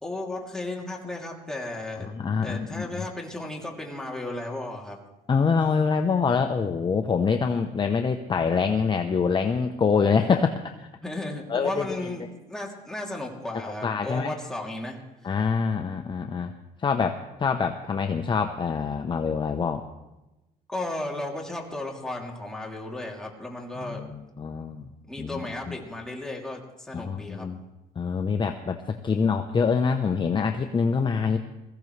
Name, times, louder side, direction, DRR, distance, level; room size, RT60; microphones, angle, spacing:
voice 1, 0.0-2.1 2.4-5.0 11.0-15.0 20.7-24.0 25.1-27.5, left 2 dB, 5° left, -2 dB, 3.0 m, -34 dB
voice 2, 2.0-3.0 5.3-10.9 11.5-12.0 13.6-14.3 15.2-16.5 16.8-19.8 23.8-24.9 25.2-25.8 26.9-27.6 28.0-31.4, left 5 dB, 30° left, 6 dB, 0.8 m, -25 dB
22.0 x 15.0 x 3.3 m, 1.0 s
cardioid pair, 110°, 17 cm